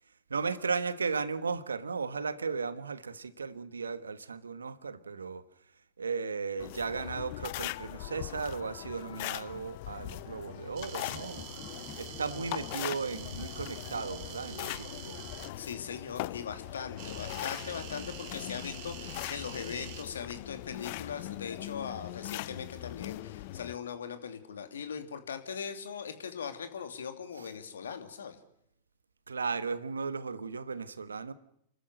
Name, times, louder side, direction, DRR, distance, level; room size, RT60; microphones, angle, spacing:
voice 1, 0.3-5.4 6.0-11.5 12.0-15.2 27.4-27.5 29.3-31.3, right 5 dB, 85° right, 14 dB, 1.3 m, -35 dB
sound 1, 6.6-23.7, left 17 dB, 55° left, 0.8 m, -41 dB
sound 2, 10.8-15.5 17.0-20.0, right 9 dB, 50° right, 3.1 m, -46 dB
sound 3, 11.0-14.4 14.7-14.8, left 6 dB, 35° left, 5.2 m, -51 dB
voice 2, 15.6-28.4, left 7 dB, 80° left, 8 dB, 2.8 m, -40 dB
29.5 x 13.5 x 7.9 m, 0.75 s
hypercardioid pair, 100°, 0 cm